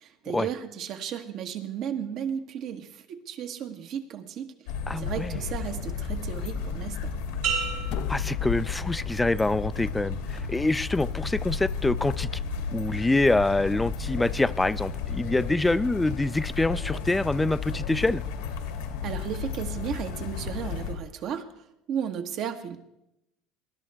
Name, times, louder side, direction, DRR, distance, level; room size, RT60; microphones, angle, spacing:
voice 1, 0.0-7.1 19.0-22.8, right 8 dB, 60° right, 7 dB, 1.3 m, -34 dB
sound 1, 4.7-20.9, left 5 dB, 90° left, 2.0 m, -33 dB
voice 2, 4.9-5.4 8.1-12.3 12.7-18.2, left 2 dB, 10° left, 18 dB, 0.4 m, -25 dB
sound 2, 7.4-9.2 9.7-10.2, right 6 dB, 75° right, 4.3 m, -34 dB
sound 3, 7.9-10.0, left 9 dB, 70° left, 0.5 m, -36 dB
19.5 x 11.0 x 3.4 m, 0.85 s
supercardioid pair, 95°, 0 cm